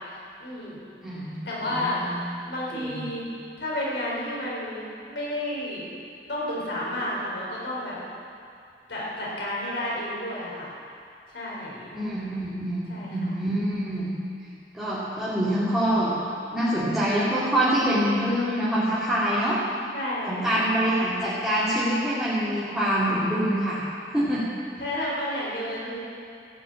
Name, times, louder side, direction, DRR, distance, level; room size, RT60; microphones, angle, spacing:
voice 1, 0.4-0.8 1.4-3.2 3.6-5.9 6.3-8.0 8.9-10.7 11.3-12.0 12.9-13.3 19.9-20.6 24.8-26.0, left 1 dB, 85° left, -5 dB, 3.9 m, -31 dB
voice 2, 1.0-2.2 2.7-3.1 11.9-14.2 14.7-16.1 16.5-19.6 20.3-23.8 24.1-24.5, equal, 5° right, -12 dB, 2.4 m, -25 dB
15.5 x 6.5 x 8.8 m, 2.4 s
head